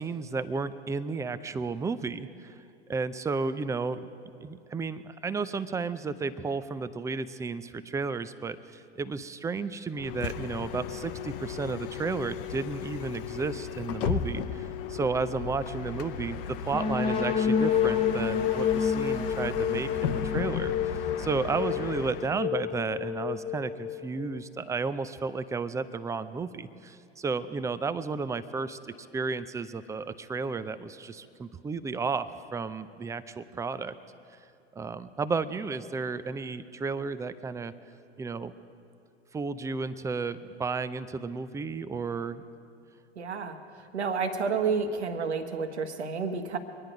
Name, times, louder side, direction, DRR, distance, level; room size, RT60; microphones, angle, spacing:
voice 1, 0.0-2.6 2.9-4.0 4.4-28.8 29.1-34.0 34.8-37.7 38.2-38.5 39.3-42.4, right 4 dB, 10° right, 13 dB, 0.4 m, -33 dB
Bus, 10.0-22.4, left 8 dB, 55° left, 0.8 m, -36 dB
sound 1, 16.7-24.4, left 7 dB, 15° left, 1.1 m, -29 dB
voice 2, 43.2-43.6 43.9-46.6, right 5 dB, 80° right, 6 dB, 1.4 m, -30 dB
24.5 x 10.5 x 5.0 m, 2.4 s
hypercardioid pair, 95°, 33 cm